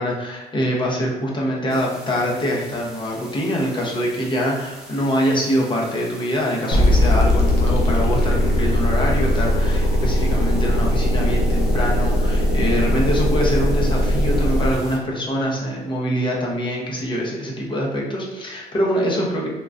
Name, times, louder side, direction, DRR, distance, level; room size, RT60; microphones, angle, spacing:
voice 1, 0.0-19.5, equal, 30° left, -3 dB, 0.8 m, -24 dB
sound 1, 1.7-15.0, right 1 dB, 5° right, 0.7 m, -43 dB
sound 2, 6.7-14.7, left 1 dB, 75° left, 0.8 m, -19 dB
3.6 x 2.3 x 2.5 m, 1.1 s
cardioid pair, 110°, 17 cm